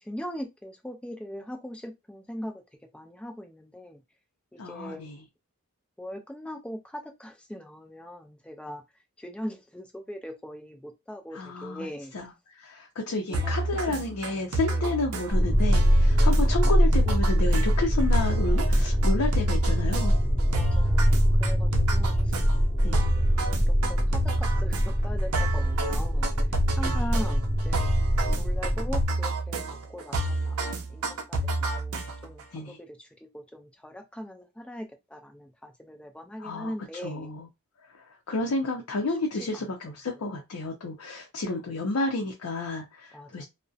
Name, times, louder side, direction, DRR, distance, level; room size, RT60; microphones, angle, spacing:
voice 1, 0.0-2.5 2.9-4.0 4.5-5.0 6.0-8.8 9.2-12.1 13.3-13.5 13.9-14.0 14.3-14.9 20.5-22.4 22.8-23.3 23.7-26.4 26.8-28.0 28.4-37.3 38.4-38.5 39.1-39.2 39.5-39.7 43.1-43.4, equal, 5° left, 0.4 m, -40 dB
voice 2, 4.6-5.1 11.3-11.9 12.1-12.3 12.6-20.1 22.8-23.0 26.8-27.0 32.5-32.8 36.4-36.7 37.0-37.5 38.0-43.4, left 2 dB, 70° left, 0.5 m, -31 dB
sound 1, 13.3-32.4, right 2 dB, 75° right, 0.5 m, -30 dB
sound 2, 15.3-29.0, equal, 25° left, 0.8 m, -23 dB
2.6 x 2.0 x 2.3 m
head